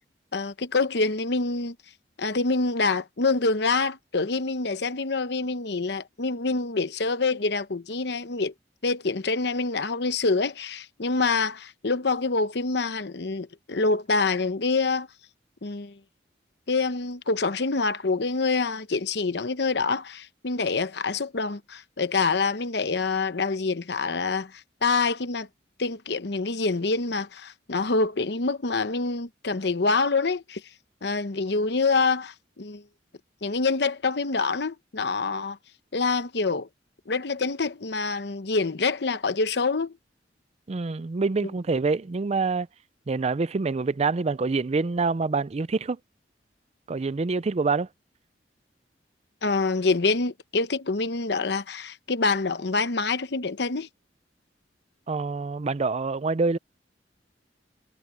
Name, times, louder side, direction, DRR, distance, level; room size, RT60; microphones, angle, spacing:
voice 1, 0.3-1.7 2.2-8.5 8.8-15.1 15.6-16.0 16.7-24.5 24.8-25.5 25.8-30.6 31.0-32.8 33.4-35.6 35.9-36.7 37.1-39.9 49.4-53.9, left 3 dB, 70° left, 0.9 m, -26 dB
voice 2, 40.7-42.7 43.1-46.0 46.9-47.9 55.1-56.6, right 4 dB, 35° right, 0.4 m, -26 dB
head